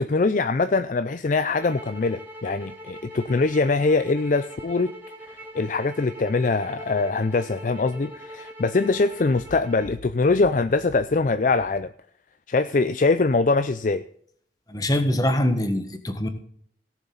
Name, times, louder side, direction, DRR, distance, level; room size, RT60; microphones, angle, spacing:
voice 1, 0.0-4.9 5.2-11.9 12.5-14.0, left 3 dB, 45° left, 11 dB, 0.4 m, -23 dB
sound 1, 1.6-10.0, equal, 10° right, 2.2 m, -42 dB
voice 2, 14.7-16.3, left 1 dB, 20° left, 7 dB, 1.4 m, -23 dB
17.5 x 7.3 x 3.9 m, 0.63 s
head